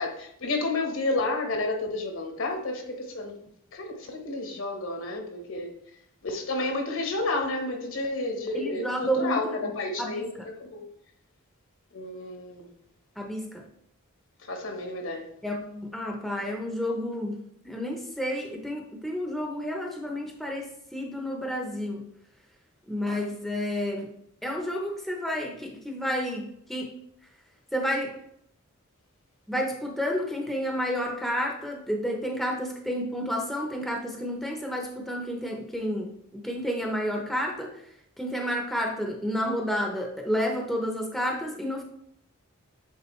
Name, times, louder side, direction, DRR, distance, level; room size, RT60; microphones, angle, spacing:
voice 1, 0.0-3.4 3.7-5.7 6.2-10.3 10.6-10.9 11.9-12.7 14.5-15.2, left 2 dB, 65° left, 3 dB, 1.1 m, -31 dB
voice 2, 8.5-9.7 10.0-10.5 13.2-13.6 15.4-17.4 17.6-20.7 20.9-22.0 22.9-24.1 24.4-26.9 27.7-28.1 29.5-37.8 38.2-41.8, equal, ahead, 1 dB, 0.7 m, -30 dB
8.5 x 3.7 x 3.1 m, 0.71 s
head